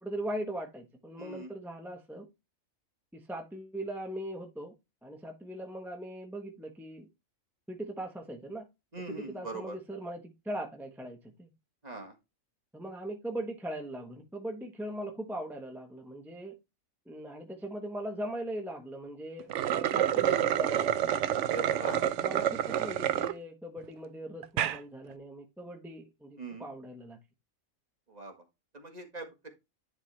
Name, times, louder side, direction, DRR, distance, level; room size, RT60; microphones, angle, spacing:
voice 1, 0.0-2.3 3.1-4.7 5.0-7.1 7.7-8.7 9.1-11.5 12.7-16.5 17.1-21.2 21.8-27.2, right 1 dB, ahead, 3 dB, 1.0 m, -40 dB
voice 2, 1.2-1.5 8.9-9.6 11.8-12.1 21.4-22.0 26.4-26.6 28.1-28.3 28.7-29.5, right 3 dB, 30° right, 4 dB, 1.7 m, -41 dB
sound 1, 19.4-23.3 23.8-23.9 24.4-24.8, right 10 dB, 65° right, 0.9 m, -28 dB
10.5 x 4.3 x 3.3 m, 0.24 s
omnidirectional pair, 1.4 m